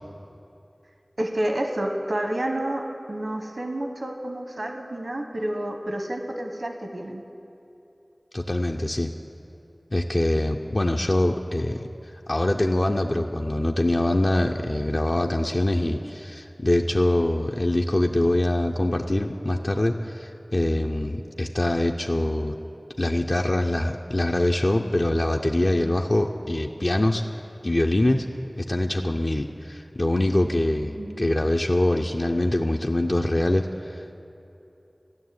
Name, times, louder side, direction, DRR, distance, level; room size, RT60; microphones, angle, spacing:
voice 1, 1.2-7.2 31.0-31.3, right 1 dB, 80° right, 4 dB, 1.0 m, -29 dB
voice 2, 8.3-9.1 9.9-11.8 12.3-22.6 23.0-27.2 27.6-28.3 28.6-34.2, left 1 dB, 55° left, 2 dB, 0.5 m, -24 dB
14.0 x 6.5 x 9.4 m, 2.8 s
wide cardioid pair, 45°, 0 cm